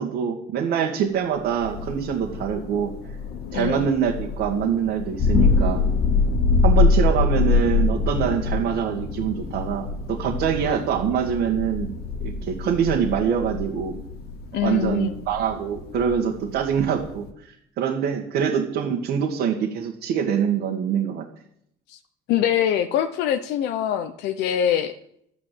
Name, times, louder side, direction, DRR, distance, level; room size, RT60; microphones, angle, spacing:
voice 1, 0.0-2.9 3.5-5.9 6.6-12.0 12.2-14.0 14.6-21.3, right 8 dB, 80° right, -1 dB, 2.0 m, -24 dB
Thunder, 1.5-17.3, left 3 dB, 70° left, 2.1 m, -25 dB
voice 2, 3.5-3.9 14.5-15.1 21.9-22.0 22.3-24.9, left 10 dB, 90° left, 8 dB, 0.9 m, -24 dB
12.5 x 9.8 x 7.9 m, 0.73 s
cardioid pair, 110°, 17 cm